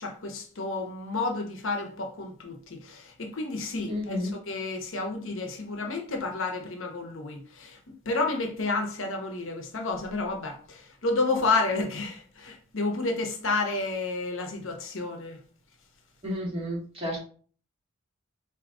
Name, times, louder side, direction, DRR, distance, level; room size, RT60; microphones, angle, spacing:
voice 1, 0.0-15.4, left 3 dB, 60° left, 0.9 m, -31 dB
voice 2, 3.9-4.4 16.2-17.2, left 1 dB, 25° right, 2.0 m, -31 dB
4.9 x 2.8 x 3.7 m
head